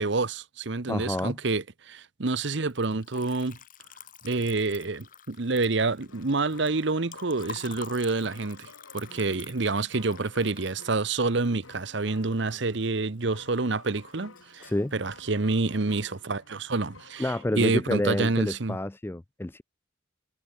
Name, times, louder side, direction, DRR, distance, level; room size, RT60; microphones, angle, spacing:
voice 1, 0.0-3.6 4.2-18.8, right 3 dB, 60° right, 0.9 m, -28 dB
voice 2, 0.9-1.4 14.6-14.9 17.2-19.6, left 1 dB, 10° left, 0.4 m, -29 dB
Liquid, 2.6-12.9 13.2-13.9 14.1-14.9, left 7 dB, 40° left, 1.8 m, -48 dB
sound 1, 6.0-17.5, left 3 dB, 85° left, 3.2 m, -52 dB
head